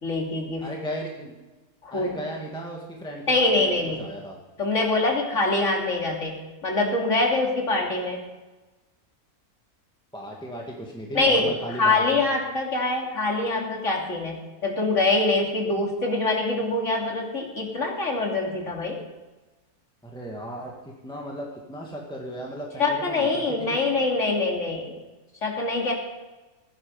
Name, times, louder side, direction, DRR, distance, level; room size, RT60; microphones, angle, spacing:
voice 1, 0.0-0.7 1.8-2.2 3.3-4.1 4.6-8.2 11.1-11.5 11.8-19.0 22.8-25.0 25.4-25.9, left 2 dB, 50° left, 0 dB, 3.1 m, -24 dB
voice 2, 0.6-1.4 1.9-4.4 10.1-12.2 20.0-20.7 21.0-23.8, equal, 5° left, -2 dB, 1.8 m, -36 dB
16.5 x 9.7 x 5.4 m, 1.2 s
omnidirectional pair, 1.6 m